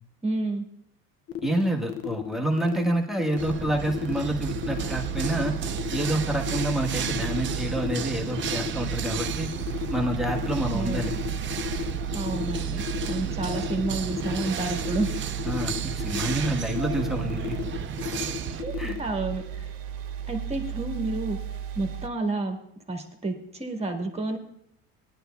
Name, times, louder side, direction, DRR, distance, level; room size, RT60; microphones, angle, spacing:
voice 1, 0.2-0.6 10.7-11.0 12.1-15.1 18.5-19.7 20.3-21.4 21.7-22.6 22.9-24.4, right 2 dB, 15° right, 3 dB, 1.4 m, -30 dB
sound 1, 1.3-19.0, left 11 dB, 40° left, 0.7 m, -34 dB
voice 2, 1.4-5.6 5.9-9.5 9.9-11.1 15.4-17.6 18.8-19.0, right 1 dB, ahead, 2 dB, 1.2 m, -28 dB
sound 2, 3.4-18.6, right 7 dB, 30° right, 0.6 m, -34 dB
sound 3, 4.2-22.1, right 9 dB, 65° right, 0.9 m, -35 dB
17.5 x 10.5 x 2.3 m, 0.71 s
supercardioid pair, 105°, 37 cm